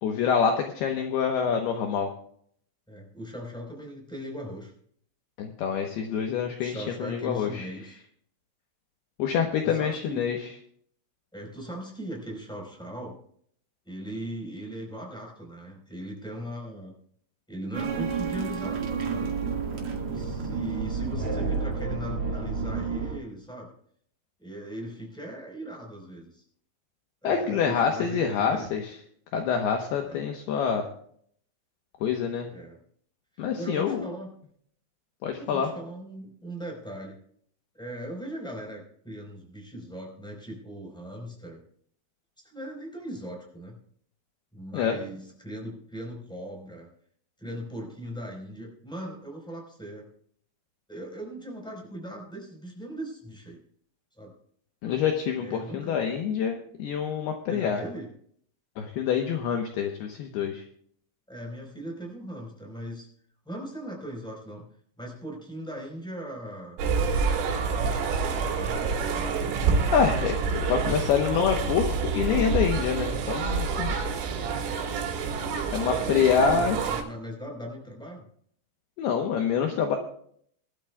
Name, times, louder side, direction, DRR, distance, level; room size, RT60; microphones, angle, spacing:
voice 1, 0.0-2.1 5.4-7.7 9.2-10.4 27.2-28.8 29.3-30.9 32.0-32.5 33.4-34.0 35.2-35.7 44.7-45.0 54.8-57.8 58.8-60.6 69.9-73.9 75.7-76.8 79.0-80.0, left 7 dB, 75° left, 3 dB, 2.4 m, -26 dB
voice 2, 2.9-4.7 6.6-7.9 9.6-10.2 11.3-13.2 13.8-16.9 17.5-19.3 20.1-23.7 24.4-26.4 27.2-28.8 30.0-30.2 32.5-32.8 33.3-34.3 35.4-37.1 37.7-41.6 42.4-43.8 44.5-46.9 47.4-50.0 50.9-53.6 54.2-54.3 55.4-56.0 57.5-58.1 61.3-63.1 63.4-64.7 65.0-69.3 74.8-75.1 76.4-78.3, right 1 dB, ahead, 0 dB, 3.3 m, -39 dB
sound 1, 17.7-23.2, right 5 dB, 75° right, 1.3 m, -30 dB
sound 2, 66.8-77.0, right 5 dB, 90° right, 4.6 m, -27 dB
23.5 x 12.5 x 2.3 m, 0.63 s
omnidirectional pair, 5.9 m